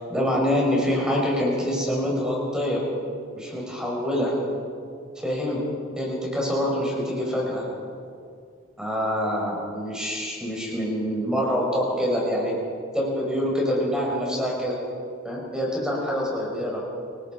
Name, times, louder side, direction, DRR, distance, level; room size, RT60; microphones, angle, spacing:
voice 1, 0.1-2.9 3.3-4.4 5.2-5.6 6.0-7.7 8.8-12.5 12.9-14.8 15.2-16.8, equal, 5° right, -3 dB, 5.4 m, -25 dB
29.0 x 19.0 x 5.2 m, 2.3 s
head